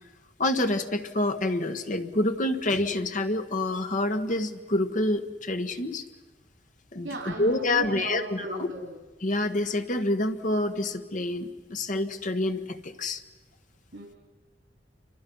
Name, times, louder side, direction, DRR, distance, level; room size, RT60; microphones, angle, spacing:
voice 1, 0.4-6.0 6.9-8.7 9.2-13.2, left 1 dB, 45° left, 7 dB, 1.4 m, -27 dB
voice 2, 7.0-9.0 13.9-14.2, right 2 dB, 85° right, 2 dB, 2.9 m, -36 dB
29.5 x 25.0 x 5.5 m, 1.2 s
head